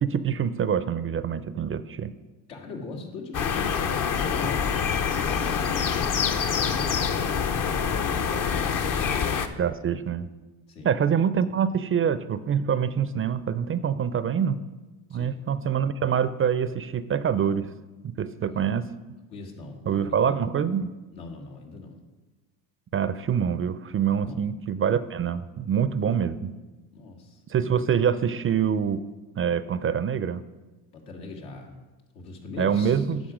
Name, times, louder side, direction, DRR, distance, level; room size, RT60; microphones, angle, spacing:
voice 1, 0.0-2.1 9.6-10.3 10.8-14.6 15.1-17.7 18.0-18.9 19.9-20.9 22.9-26.5 27.5-29.0 29.4-30.4 32.6-33.2, right 8 dB, 30° right, 14 dB, 0.4 m, -25 dB
voice 2, 2.5-3.8 4.2-7.3 10.7-11.0 15.1-15.4 18.4-18.9 19.3-20.4 21.1-22.0 24.2-24.5 26.9-27.4 30.9-31.8 32.1-33.1, left 3 dB, 80° left, 1 dB, 1.9 m, -41 dB
sound 1, 3.3-9.5, left 6 dB, 50° left, 0.8 m, -26 dB
10.0 x 5.9 x 5.0 m, 1.2 s
supercardioid pair, 75°, 42 cm